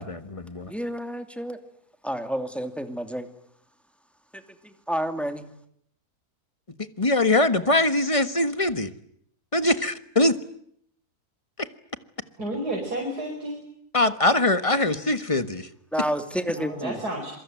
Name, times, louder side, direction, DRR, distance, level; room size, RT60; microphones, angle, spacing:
voice 1, 0.0-0.7 7.0-8.9 9.5-10.4 11.6-11.7 13.9-15.7, left 2 dB, 20° left, 1.4 m, -22 dB
voice 2, 0.7-1.6 2.0-3.3 4.3-5.5 15.9-17.0, equal, ahead, 2.6 m, -30 dB
voice 3, 12.4-13.6 16.4-17.3, right 1 dB, 85° right, 5.7 m, -31 dB
27.5 x 23.5 x 9.2 m
omnidirectional pair, 1.6 m